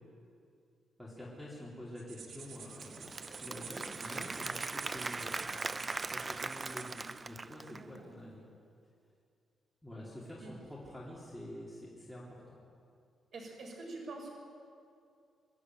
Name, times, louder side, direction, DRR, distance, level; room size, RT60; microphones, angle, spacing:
voice 1, 1.0-5.3 6.1-8.4 9.8-12.6, left 1 dB, ahead, -5 dB, 3.0 m, -47 dB
sound 1, 2.0-7.2, right 6 dB, 85° right, 2.1 m, -49 dB
Applause / Crowd, 2.6-8.0, right 3 dB, 20° right, 0.4 m, -40 dB
voice 2, 7.7-8.0 10.4-10.5 13.3-14.3, right 2 dB, 55° right, -1 dB, 5.6 m, -45 dB
23.5 x 12.0 x 9.1 m, 2.4 s
wide cardioid pair, 160°, 0 cm